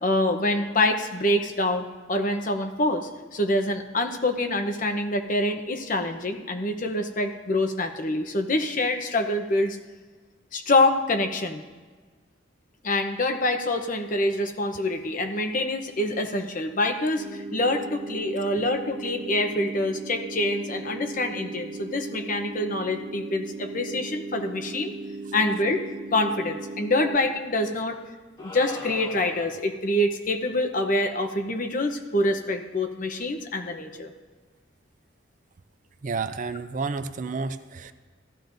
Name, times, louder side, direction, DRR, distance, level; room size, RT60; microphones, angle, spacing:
voice 1, 0.0-9.8 10.5-11.6 12.8-17.3 17.5-24.9 25.3-25.8 26.1-28.0 28.4-34.1, left 1 dB, 45° left, 6 dB, 0.8 m, -26 dB
sound 1, 17.2-27.2, right 3 dB, 80° right, 0.8 m, -37 dB
sound 2, 28.4-29.7, left 2 dB, 20° left, 2.4 m, -39 dB
voice 2, 36.0-37.9, right 4 dB, 40° right, 10 dB, 0.4 m, -30 dB
16.0 x 13.0 x 2.6 m, 1.4 s
head